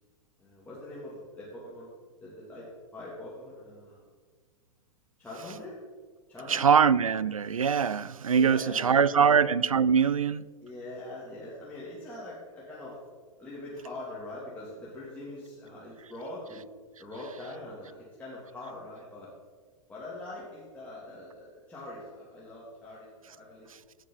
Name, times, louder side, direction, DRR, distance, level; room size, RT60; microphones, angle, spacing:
voice 1, 0.4-1.9 2.2-4.0 5.2-5.8 6.3-6.8 8.3-9.4 10.6-13.0 13.4-16.6 17.0-19.3 19.9-23.7, left 1 dB, 10° left, 2.6 m, -42 dB
voice 2, 6.5-10.5, right 6 dB, 85° right, 0.4 m, -23 dB
17.0 x 6.4 x 3.9 m
figure-of-eight pair, 100°, 17 cm